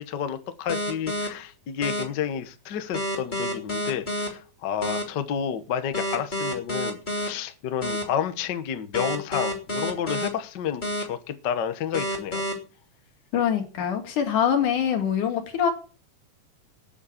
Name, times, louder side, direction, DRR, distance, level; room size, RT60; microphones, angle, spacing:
voice 1, 0.0-12.4, left 8 dB, 85° left, 10 dB, 0.9 m, -30 dB
sound 1, 0.7-1.3 1.8-2.0 2.9-4.3 4.8-5.0 5.9-7.3 7.8-8.0 8.9-10.3 10.8-11.0 11.9-12.5, equal, 15° left, 2.5 m, -28 dB
voice 2, 13.3-15.7, left 8 dB, 65° left, 6 dB, 3.5 m, -24 dB
9.7 x 8.4 x 8.5 m, 0.36 s
omnidirectional pair, 3.9 m